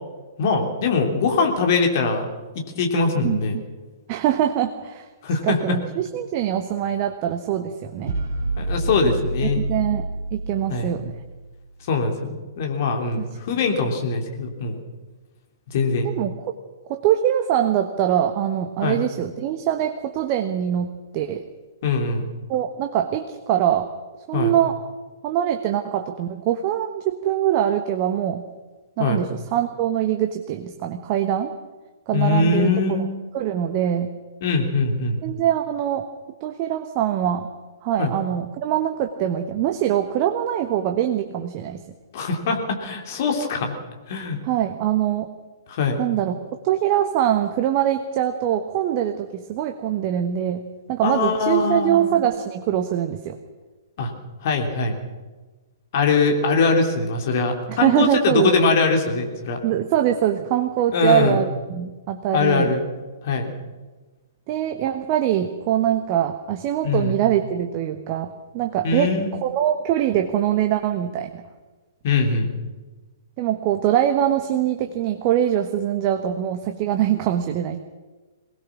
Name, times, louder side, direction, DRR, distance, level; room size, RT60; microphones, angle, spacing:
voice 1, 0.4-2.2 2.5-3.6 5.2-5.8 8.6-9.6 10.7-10.9 11.9-14.8 15.7-16.1 18.8-19.0 21.8-22.3 24.3-24.5 29.0-29.2 32.1-33.0 34.4-35.2 38.0-38.1 42.1-43.7 44.1-44.4 45.7-46.0 51.0-52.1 54.0-54.1 54.4-55.0 55.9-59.6 60.9-61.4 62.3-62.8 63.2-63.5 66.8-67.2 68.8-69.3 72.0-72.5, left 4 dB, 45° left, 3 dB, 3.4 m, -22 dB
voice 2, 4.1-5.1 5.4-8.2 9.6-11.2 13.2-13.3 16.0-16.3 16.9-21.4 22.5-23.9 24.3-24.8 25.2-28.4 29.0-31.6 32.1-33.0 33.3-34.1 35.2-36.1 36.4-37.5 37.8-41.8 44.4-45.3 46.0-46.4 46.6-50.6 50.9-53.4 57.7-58.5 59.6-62.7 64.5-71.4 73.4-77.8, right 11 dB, 35° right, 6 dB, 1.2 m, -23 dB
sound 1, 8.1-11.5, right 2 dB, 50° right, 3.1 m, -28 dB
23.0 x 19.5 x 6.2 m, 1.3 s
figure-of-eight pair, 115°, 2 cm